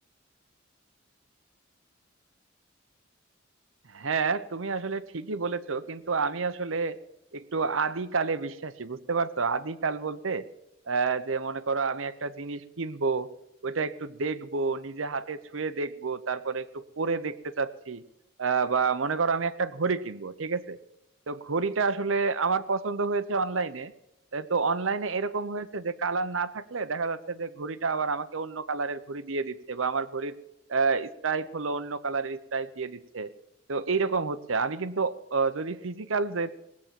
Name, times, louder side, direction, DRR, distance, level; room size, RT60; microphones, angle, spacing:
voice 1, 3.9-7.0 7.3-10.5 10.9-13.3 13.6-18.0 18.4-20.8 21.3-23.9 24.3-30.4 30.7-33.3 33.7-36.5, right 4 dB, 85° right, 13 dB, 0.8 m, -29 dB
18.5 x 8.5 x 7.5 m, 0.89 s
head